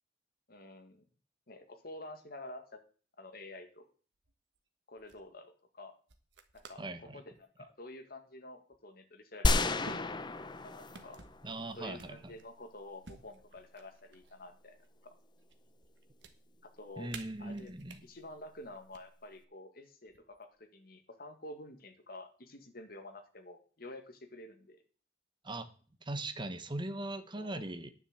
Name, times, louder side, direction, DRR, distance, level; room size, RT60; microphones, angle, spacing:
voice 1, 0.5-1.0 1.5-2.8 3.2-3.9 4.9-5.9 6.5-11.2 11.7-14.8 15.0-15.1 16.8-17.1 17.4-24.8 27.4-27.6, left 1 dB, 55° left, 6 dB, 2.0 m, -49 dB
sound 1, 4.2-4.6 5.0-5.3 6.1-7.0 7.4-7.7 8.7-8.8 9.8-10.6 10.9-11.4 12.0-12.6 13.0-14.4 14.8-15.5 15.8-16.3 17.1-18.0 18.7-19.0 20.1-20.6, right 4 dB, 90° right, 1.4 m, -52 dB
voice 2, 6.8-7.2 11.4-12.2 17.0-18.0 25.4-25.7 26.0-27.9, right 2 dB, 25° right, 10 dB, 1.1 m, -40 dB
sound 2, 9.4-11.7, left 2 dB, 25° left, 0.7 m, -31 dB
10.0 x 6.2 x 8.0 m, 0.41 s
head